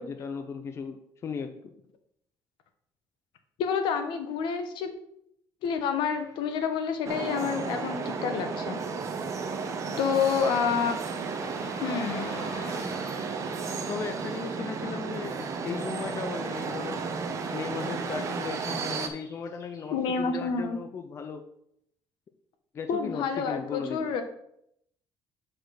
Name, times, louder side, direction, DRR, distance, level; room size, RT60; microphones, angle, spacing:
voice 1, 0.0-1.7 9.9-10.0 13.8-17.1 17.5-21.4 22.7-24.1, left 6 dB, 35° left, 7 dB, 0.6 m, -37 dB
voice 2, 3.6-4.9 5.6-8.8 10.0-11.0 11.8-12.3 19.9-20.8 22.9-24.2, left 6 dB, 75° left, 7 dB, 1.1 m, -28 dB
Car passing by / Traffic noise roadway noise, 6.0-20.3, left 1 dB, 50° left, 3.0 m, -49 dB
sound 1, 7.0-19.1, right 5 dB, 40° right, 0.9 m, -33 dB
6.2 x 5.0 x 6.4 m, 0.75 s
cardioid pair, 155°, 8 cm